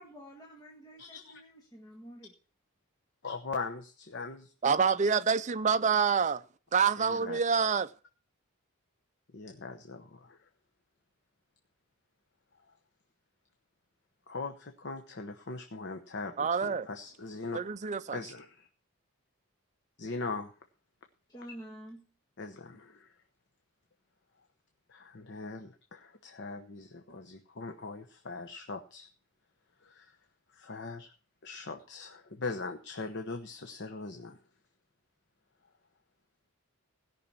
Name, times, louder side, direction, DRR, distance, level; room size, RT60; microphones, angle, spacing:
voice 1, 0.0-2.3 21.3-22.0, equal, 15° left, 1.4 m, -49 dB
voice 2, 1.0-1.4 3.2-4.5 6.8-7.4 9.3-10.5 14.3-17.6 18.1-18.7 20.0-20.5 22.4-23.1 24.9-29.1 29.8-30.2 30.5-31.1 31.4-34.4, left 3 dB, 55° left, 1.0 m, -41 dB
voice 3, 4.6-6.4 6.7-7.9 16.4-16.9 17.5-18.2, right 6 dB, 35° right, 0.5 m, -27 dB
16.5 x 5.9 x 7.0 m
head